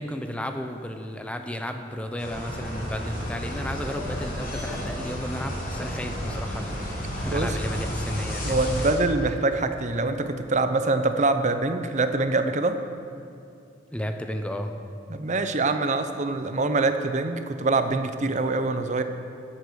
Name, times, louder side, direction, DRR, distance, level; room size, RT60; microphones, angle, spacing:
voice 1, 0.0-8.6 13.9-14.7, equal, 5° left, 6 dB, 0.8 m, -33 dB
sound 1, 2.2-8.9, equal, 50° left, 3.8 m, -31 dB
voice 2, 8.4-12.8 15.1-19.0, right 3 dB, 40° right, 9 dB, 0.7 m, -24 dB
16.0 x 8.3 x 6.4 m, 2.5 s
head